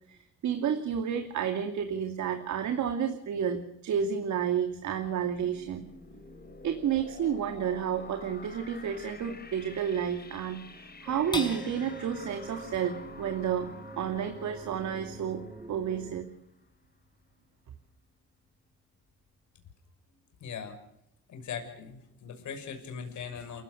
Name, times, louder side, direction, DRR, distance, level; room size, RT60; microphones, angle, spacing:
voice 1, 0.1-5.8 6.6-15.4 15.7-16.3, right 8 dB, 70° right, 6 dB, 2.6 m, -31 dB
sound 1, 4.7-16.4, left 3 dB, 30° left, 4.3 m, -49 dB
sound 2, 11.1-16.2, right 2 dB, 10° right, 2.0 m, -46 dB
sound 3, 11.3-18.0 18.5-18.6 19.0-19.5, left 2 dB, 15° left, 5.3 m, -45 dB
voice 2, 20.4-20.8 21.3-23.6, left 6 dB, 75° left, 5 dB, 6.2 m, -40 dB
29.0 x 16.5 x 6.5 m, 0.79 s
cardioid pair, 90°, 30 cm